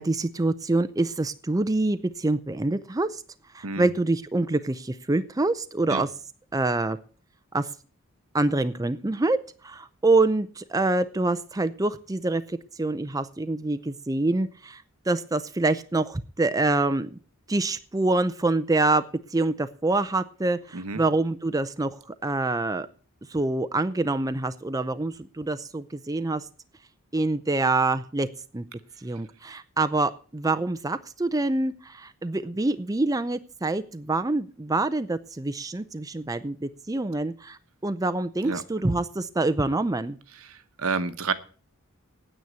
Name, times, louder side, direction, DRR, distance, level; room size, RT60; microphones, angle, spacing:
voice 1, 0.0-3.2 3.5-6.1 6.5-7.0 7.5-7.7 8.3-9.4 9.6-17.2 17.5-19.0 19.3-22.9 23.3-26.5 27.1-28.3 28.5-28.6 29.0-40.2, right 2 dB, 15° right, 12 dB, 0.5 m, -26 dB
voice 2, 40.4-41.3, right 4 dB, 70° right, 12 dB, 1.1 m, -30 dB
9.4 x 8.8 x 8.2 m, 0.39 s
head